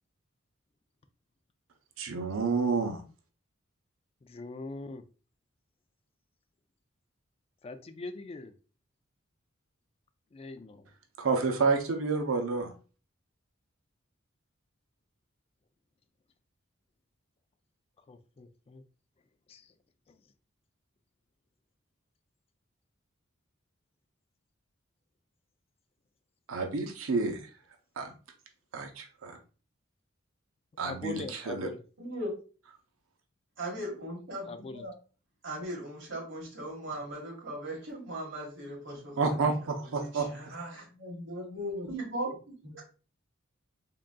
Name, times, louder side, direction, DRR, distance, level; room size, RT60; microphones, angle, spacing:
voice 1, 2.0-3.0 11.2-12.7 26.5-27.4 28.0-28.1 28.7-29.4 30.8-31.7 39.2-40.6, right 4 dB, 85° right, 5 dB, 0.6 m, -29 dB
voice 2, 4.2-5.0 7.6-8.5 10.3-10.9 18.1-18.8 19.5-19.7 20.1-20.2 30.8-31.8 34.5-34.9, left 3 dB, 30° left, 9 dB, 0.3 m, -42 dB
voice 3, 32.0-32.3 33.6-34.9 35.4-39.3 40.0-42.3 42.6-42.8, right 1 dB, 65° right, -1 dB, 1.6 m, -38 dB
3.8 x 3.7 x 2.2 m, 0.36 s
head